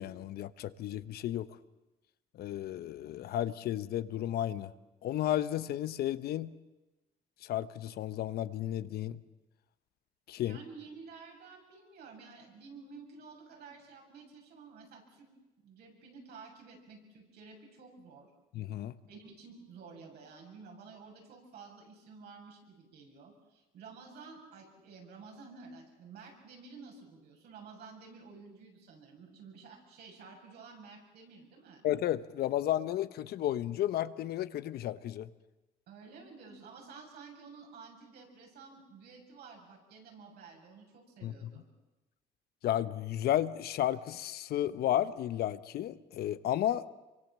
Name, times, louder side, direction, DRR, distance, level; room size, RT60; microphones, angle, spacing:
voice 1, 0.0-1.5 2.4-4.7 5.0-6.5 7.4-9.2 10.3-10.6 18.5-19.0 31.8-35.3 41.2-41.5 42.6-46.9, left 12 dB, 65° left, 14 dB, 1.0 m, -33 dB
voice 2, 10.4-15.3 15.6-18.3 19.1-31.9 35.9-41.7, right 4 dB, 70° right, 1 dB, 7.2 m, -52 dB
26.0 x 24.0 x 7.5 m, 1.0 s
cardioid pair, 110°, 17 cm